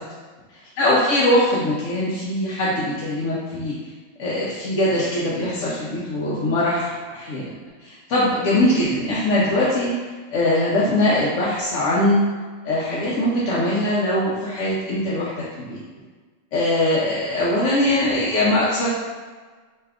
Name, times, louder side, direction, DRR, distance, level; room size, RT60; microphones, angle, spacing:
voice 1, 0.5-3.7 4.2-7.5 7.8-9.9 10.3-12.2 12.6-15.8 16.5-18.9, left 1 dB, 80° left, -7 dB, 0.9 m, -21 dB
2.7 x 2.4 x 3.3 m, 1.4 s
omnidirectional pair, 1.3 m